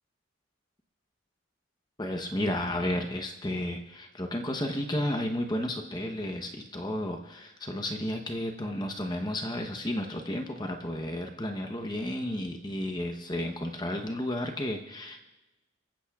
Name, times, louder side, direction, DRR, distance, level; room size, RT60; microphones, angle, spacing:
voice 1, 2.0-15.2, left 1 dB, 20° left, 4 dB, 0.9 m, -32 dB
26.0 x 15.0 x 2.4 m, 1.0 s
head